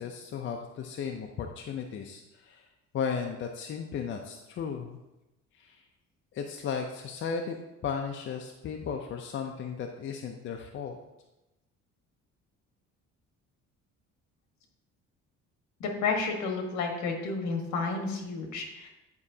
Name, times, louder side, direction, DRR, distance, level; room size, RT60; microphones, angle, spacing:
voice 1, 0.0-2.7 2.9-5.0 5.5-5.8 6.3-7.6 7.8-11.0, left 6 dB, 40° left, 3 dB, 0.5 m, -35 dB
voice 2, 15.8-18.9, left 4 dB, 70° left, 2 dB, 1.4 m, -31 dB
9.5 x 4.8 x 2.7 m, 0.98 s
cardioid pair, 125°, 29 cm